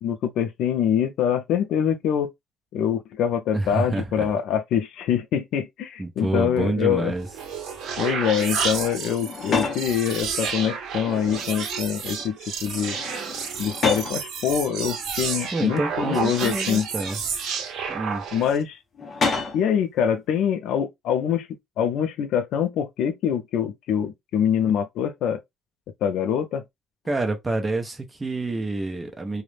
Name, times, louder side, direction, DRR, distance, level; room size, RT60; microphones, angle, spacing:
voice 1, 0.0-2.3 2.7-7.1 8.0-13.0 13.6-16.9 18.3-18.8 19.5-21.5 21.8-25.4 26.0-26.6, left 8 dB, 70° left, 0.4 m, -24 dB
voice 2, 3.5-4.3 6.0-7.3 15.5-17.2 17.9-18.2 27.1-29.4, right 2 dB, 15° right, 0.5 m, -27 dB
sound 1, 7.1-18.6, right 6 dB, 65° right, 0.6 m, -31 dB
sound 2, 9.2-9.9 10.9-11.7 12.0-12.3 12.7-14.2 15.1-15.2 16.3-17.2 18.9-19.7, left 4 dB, 30° left, 0.6 m, -30 dB
2.4 x 2.0 x 3.1 m
cardioid pair, 160°, 0 cm